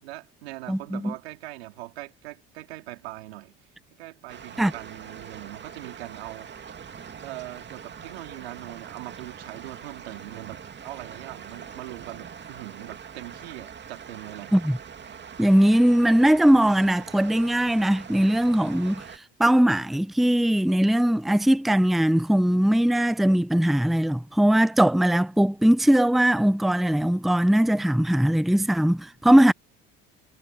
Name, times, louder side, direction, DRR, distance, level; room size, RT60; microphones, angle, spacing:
voice 1, 0.0-3.5 3.9-6.7 7.1-14.5, right 19 dB, 85° right, 3.2 m, -41 dB
voice 2, 0.7-1.1 4.6-4.7 14.5-14.8 15.4-29.5, right 1 dB, ahead, 0.8 m, -20 dB
sound 1, 4.3-19.2, right 7 dB, 35° right, 2.5 m, -43 dB
hypercardioid pair, 75°, 31 cm